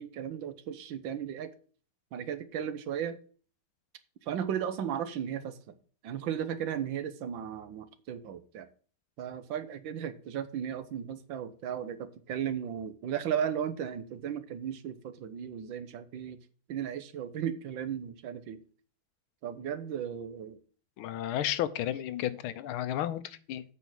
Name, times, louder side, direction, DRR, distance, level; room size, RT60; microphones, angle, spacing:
voice 1, 0.0-1.5 2.1-3.2 4.3-5.7 6.0-8.7 9.2-16.4 16.7-18.6 19.4-20.6, right 9 dB, 70° right, 12 dB, 1.5 m, -35 dB
voice 2, 21.0-23.6, left 12 dB, 90° left, 14 dB, 1.6 m, -32 dB
8.3 x 4.6 x 7.3 m, 0.42 s
omnidirectional pair, 2.2 m